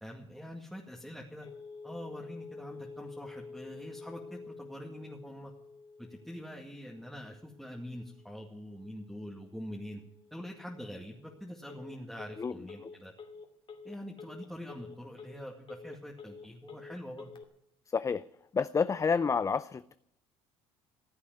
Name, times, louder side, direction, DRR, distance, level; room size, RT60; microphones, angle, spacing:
voice 1, 0.0-1.5 1.8-5.5 6.0-10.0 10.3-13.1 13.8-17.3, equal, ahead, 0 dB, 2.2 m, -44 dB
Telephone, 1.4-17.4, left 4 dB, 40° left, 2.4 m, -50 dB
voice 2, 17.9-18.2 18.5-19.9, left 5 dB, 25° left, 15 dB, 0.5 m, -29 dB
15.5 x 8.3 x 9.6 m, 0.76 s
supercardioid pair, 75°, 13 cm